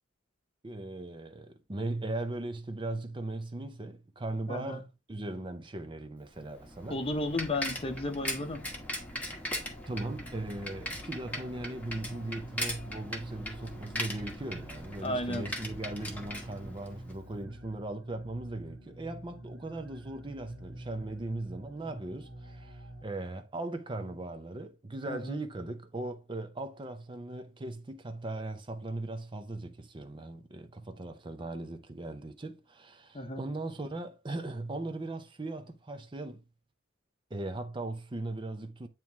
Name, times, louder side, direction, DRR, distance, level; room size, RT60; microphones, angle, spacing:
voice 1, 0.6-7.0 9.9-36.4 37.3-38.9, right 2 dB, 25° right, 0.6 m, -38 dB
voice 2, 4.5-4.8 6.9-8.6 15.0-15.5 25.1-25.4 33.1-33.5, left 1 dB, 30° left, 0.8 m, -33 dB
Bicycle, 6.4-17.2, left 1 dB, 10° left, 1.1 m, -39 dB
sound 1, 11.6-23.0, right 1 dB, 80° right, 2.0 m, -49 dB
9.0 x 3.1 x 3.4 m
head